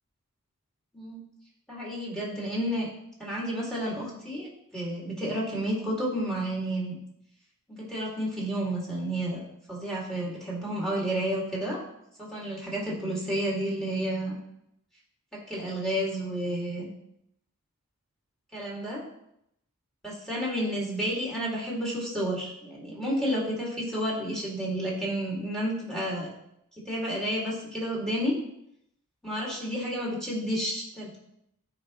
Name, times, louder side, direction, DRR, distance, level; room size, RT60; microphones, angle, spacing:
voice 1, 1.7-2.9 3.2-7.0 7.7-9.4 9.7-11.8 12.2-14.4 15.3-16.9 18.5-19.0 20.0-26.3 26.8-28.3 29.2-31.2, equal, 5° left, -5 dB, 2.5 m, -31 dB
12.5 x 5.0 x 3.2 m, 0.77 s
head